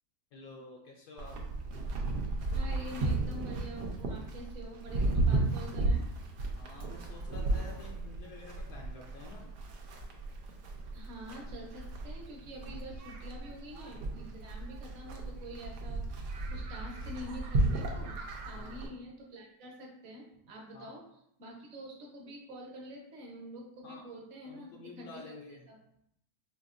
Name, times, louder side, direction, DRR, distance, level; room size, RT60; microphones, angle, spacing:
voice 1, 0.3-1.4 6.6-9.5 18.5-18.7 20.7-20.9 23.8-24.0 24.4-25.6, left 3 dB, 75° left, -1 dB, 1.1 m, -50 dB
Livestock farm animals working animals, 1.2-18.9, right 2 dB, 75° right, 1.2 m, -34 dB
voice 2, 2.5-6.0 10.9-25.8, equal, 50° right, -1 dB, 1.1 m, -47 dB
5.3 x 2.9 x 2.5 m, 0.75 s
omnidirectional pair, 1.8 m